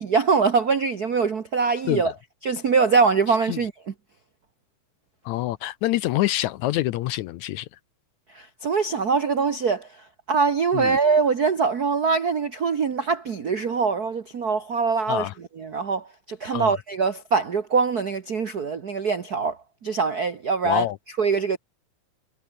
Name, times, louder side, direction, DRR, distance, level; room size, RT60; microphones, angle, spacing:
voice 1, 0.1-2.1 2.4-3.9 8.3-15.3 15.6-20.9 21.2-21.6, right 5 dB, 85° right, 0.8 m, -23 dB
voice 2, 5.3-7.7 10.7-11.0 15.1-15.3 16.5-16.7 20.6-21.0, left 15 dB, 75° left, 1.8 m, -26 dB
omnidirectional pair, 3.8 m